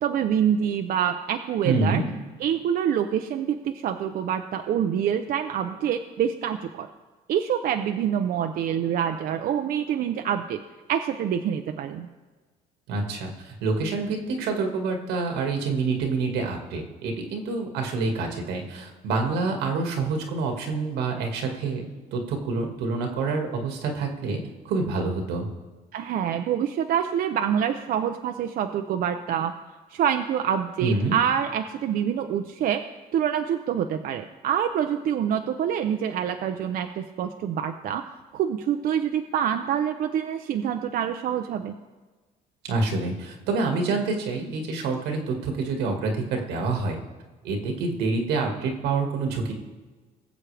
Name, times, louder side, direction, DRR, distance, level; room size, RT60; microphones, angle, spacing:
voice 1, 0.0-2.0 2.4-6.9 7.3-10.6 10.9-12.1 25.9-29.5 29.9-32.8 33.1-38.0 38.3-41.8, right 9 dB, 60° right, 6 dB, 0.6 m, -26 dB
voice 2, 1.6-2.0 12.9-24.4 24.6-25.5 30.8-31.2 42.6-47.0 47.4-49.5, right 3 dB, 85° right, 2 dB, 1.9 m, -27 dB
20.0 x 7.4 x 3.4 m, 1.3 s
cardioid pair, 110°, 17 cm